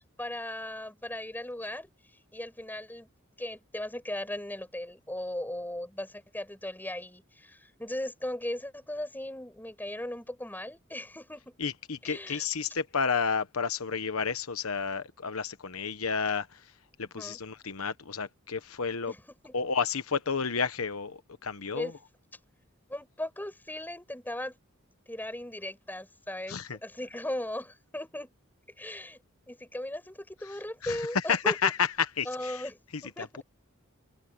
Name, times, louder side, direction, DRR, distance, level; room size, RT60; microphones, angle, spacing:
voice 1, 0.2-1.9 2.3-3.1 3.4-11.6 12.0-12.4 17.1-17.4 19.1-19.5 21.7-22.0 22.9-24.6 25.1-28.3 28.8-29.2 29.5-31.7 32.2-33.4, left 1 dB, 10° left, 6.4 m, -37 dB
voice 2, 11.6-16.6 17.0-19.1 19.5-21.9 26.5-26.8 30.8-32.6 32.9-33.4, left 6 dB, 90° left, 1.1 m, -31 dB
open air
head